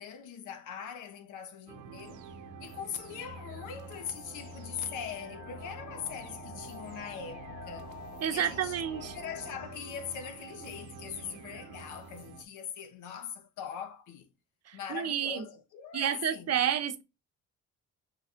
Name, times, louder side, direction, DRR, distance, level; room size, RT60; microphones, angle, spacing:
voice 1, 0.0-2.3 2.6-8.0 8.3-14.3 14.7-16.7, left 8 dB, 85° left, 0.9 m, -41 dB
sound 1, 1.7-12.4, right 4 dB, 85° right, 0.8 m, -47 dB
sound 2, 2.9-9.7, left 5 dB, 40° left, 1.1 m, -49 dB
voice 2, 8.2-9.1 14.7-15.5 15.9-17.0, right 9 dB, 55° right, 0.8 m, -30 dB
5.3 x 4.2 x 2.4 m
cardioid pair, 90°, 30 cm